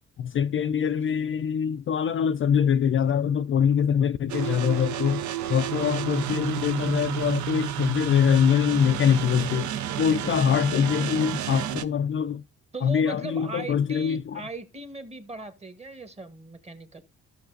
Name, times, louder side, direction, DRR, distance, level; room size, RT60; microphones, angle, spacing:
voice 1, 0.2-5.2 5.5-9.7 10.0-12.4 12.8-14.4, left 8 dB, 45° left, 0.4 m, -24 dB
sound 1, 4.3-11.8, right 11 dB, 70° right, 0.7 m, -31 dB
voice 2, 12.7-17.0, right 2 dB, 20° right, 1.2 m, -38 dB
14.5 x 5.9 x 2.5 m
cardioid pair, 90°, 30 cm